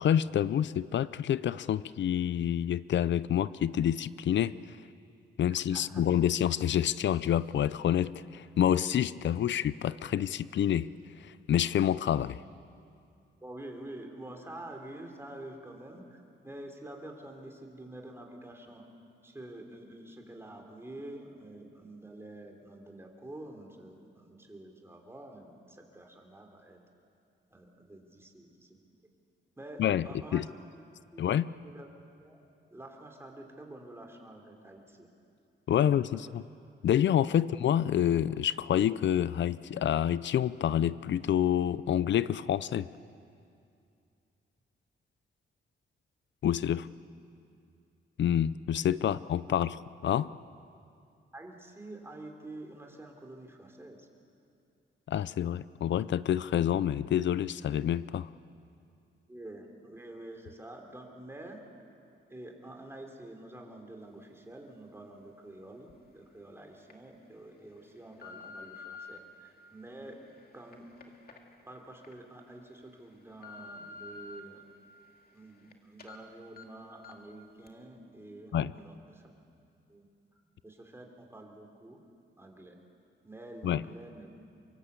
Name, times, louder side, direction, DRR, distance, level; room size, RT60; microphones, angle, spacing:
voice 1, 0.0-4.6 5.4-10.9 11.2-12.4 29.8-30.1 30.3-30.5 31.2-31.5 35.7-36.4 36.8-42.9 46.4-46.9 48.2-50.3 55.1-58.3 78.5-78.7 83.6-83.8, left 10 dB, 70° left, 17 dB, 0.6 m, -28 dB
voice 2, 5.7-6.0 13.4-18.8 19.2-26.8 27.5-29.0 29.6-30.5 30.7-30.8 31.1-31.3 31.5-31.9 32.2-32.4 32.7-35.1 35.8-36.2 51.3-54.1 59.3-61.6 62.3-71.1 71.6-74.6 75.3-79.3 79.9-80.0 80.6-82.0 82.4-82.8 83.2-84.3, right 1 dB, 15° right, 2 dB, 3.4 m, -48 dB
sound 1, 65.9-66.0 66.6-66.9 67.6-69.2 69.8-72.1 72.6-72.7 73.1-74.4 74.8-75.7 76.0-76.2 76.6-76.7 77.0-77.3 77.7-77.8, left 4 dB, 50° left, 2.4 m, -49 dB
25.0 x 23.0 x 8.3 m, 2.5 s
wide cardioid pair, 120°, 20 cm